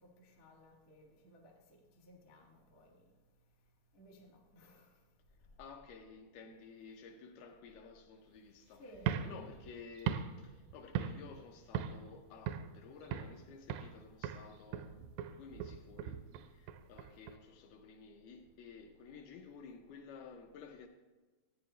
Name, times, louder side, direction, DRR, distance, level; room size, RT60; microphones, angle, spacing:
voice 1, 0.0-2.9 3.9-4.8 8.8-9.5, equal, 50° left, 0.9 m, -58 dB
voice 2, 5.6-8.8 9.2-20.9, left 5 dB, 80° left, 2.4 m, -53 dB
sound 1, 9.0-11.4 11.7-12.1 12.5-13.4 13.7-14.0 14.2-17.4, right 9 dB, 85° right, 2.7 m, -39 dB
14.0 x 9.2 x 3.2 m
omnidirectional pair, 4.8 m